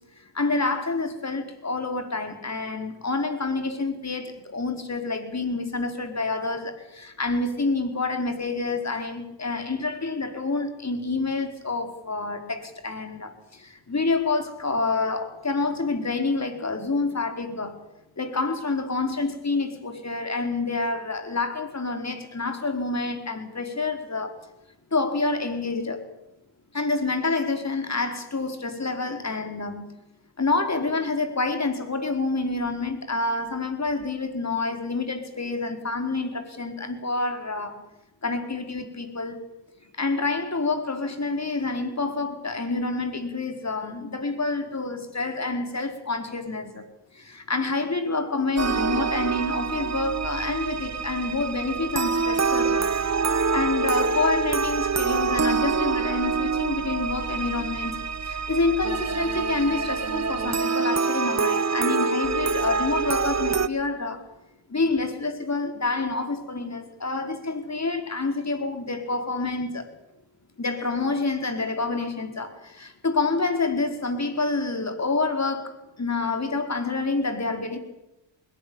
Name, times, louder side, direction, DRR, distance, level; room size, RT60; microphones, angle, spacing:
voice 1, 0.3-17.8 18.2-24.4 24.9-26.0 26.7-29.9 30.4-37.8 38.2-39.4 40.0-46.9 47.1-53.0 53.5-64.2 64.7-69.9 70.6-77.8, left 3 dB, 35° left, 4.8 m, -28 dB
sound 1, 48.6-63.7, right 5 dB, 35° right, 1.3 m, -26 dB
21.0 x 19.0 x 8.9 m
cardioid pair, 70°, 47 cm